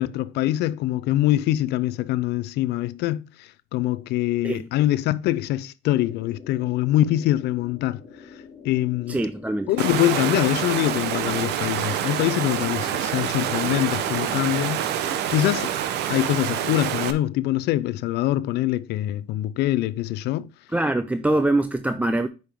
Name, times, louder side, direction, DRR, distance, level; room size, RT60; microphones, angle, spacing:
voice 1, 0.0-8.0 8.6-9.2 9.7-14.8 15.3-15.8 16.1-20.5, left 14 dB, 80° left, 0.4 m, -24 dB
sound 1, 5.9-15.6, left 5 dB, 45° left, 2.5 m, -45 dB
voice 2, 9.1-9.7 20.7-22.3, right 2 dB, 10° right, 0.4 m, -23 dB
Water, 9.8-17.1, right 10 dB, 80° right, 0.9 m, -26 dB
8.9 x 5.4 x 3.5 m
cardioid pair, 110°, 17 cm